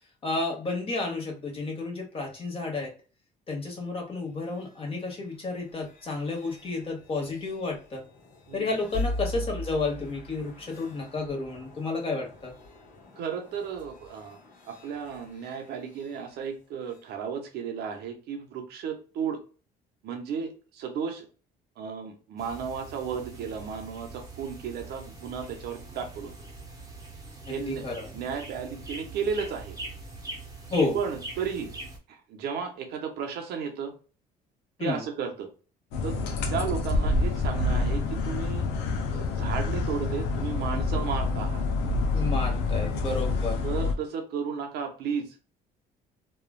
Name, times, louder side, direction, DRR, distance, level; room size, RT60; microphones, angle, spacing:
voice 1, 0.2-2.9 3.5-8.0 8.5-12.5 27.5-28.1 30.7-31.0 34.8-35.0 42.1-43.6, left 3 dB, 35° left, 0 dB, 1.1 m, -31 dB
sound 1, 4.2-17.1, left 1 dB, 50° left, 1.3 m, -41 dB
voice 2, 13.2-14.4 14.7-19.4 20.0-21.3 21.8-26.3 27.5-27.8 28.1-29.8 30.9-31.7 32.1-33.9 34.8-35.5 36.0-36.2 36.5-38.7 39.1-41.6 43.6-45.4, right 6 dB, 75° right, 4 dB, 0.8 m, -34 dB
sound 2, 22.4-32.0, right 2 dB, 20° right, 0.8 m, -43 dB
sound 3, 35.9-43.9, left 3 dB, 90° left, 0.6 m, -27 dB
3.1 x 2.3 x 2.3 m, 0.36 s
cardioid pair, 110°, 17 cm